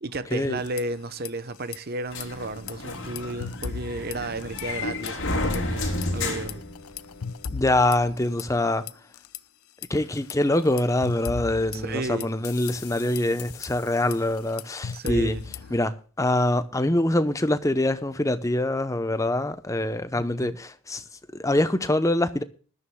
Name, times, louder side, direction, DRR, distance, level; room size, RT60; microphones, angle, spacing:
voice 1, 0.0-6.6 11.7-12.4 14.9-15.4 20.1-20.6, right 2 dB, 45° right, 0.8 m, -33 dB
sound 1, 0.5-1.3 1.6-1.8 2.1-4.8 5.1-5.6 6.0-9.4 9.8-15.8, left 6 dB, 85° left, 0.6 m, -37 dB
sound 2, 2.1-7.4, left 2 dB, 65° left, 3.3 m, -31 dB
voice 2, 7.5-8.8 9.9-15.4 15.7-21.0 21.3-22.4, left 1 dB, 15° left, 0.7 m, -24 dB
20.5 x 13.0 x 2.2 m
head